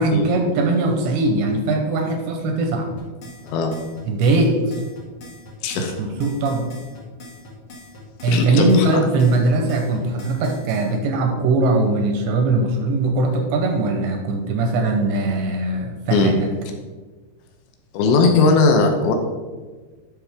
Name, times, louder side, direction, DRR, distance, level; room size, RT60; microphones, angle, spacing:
voice 1, 0.0-2.9 4.1-4.7 6.0-6.7 8.2-16.5, right 2 dB, 80° right, 3 dB, 2.9 m, -20 dB
sound 1, 3.0-10.9, left 1 dB, 45° left, 1.9 m, -42 dB
voice 2, 3.4-3.8 5.6-6.0 8.3-8.9 16.1-16.3 17.9-19.1, left 3 dB, 75° left, 4 dB, 2.8 m, -18 dB
11.0 x 5.7 x 3.5 m, 1.4 s
omnidirectional pair, 5.6 m